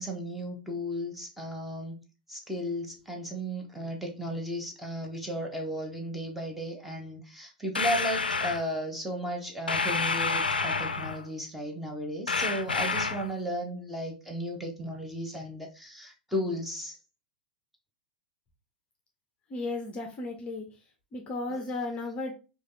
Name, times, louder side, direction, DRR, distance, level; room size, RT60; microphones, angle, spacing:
voice 1, 0.0-2.0 2.3-17.0 21.5-21.6, equal, 5° right, 1 dB, 0.9 m, -35 dB
sound 1, 7.7-8.6 9.7-11.3 12.3-13.3, left 4 dB, 80° left, 0.4 m, -29 dB
voice 2, 19.5-20.6 21.1-22.3, left 2 dB, 25° left, 3 dB, 0.6 m, -34 dB
4.9 x 2.4 x 2.6 m, 0.32 s
figure-of-eight pair, 95°, 5 cm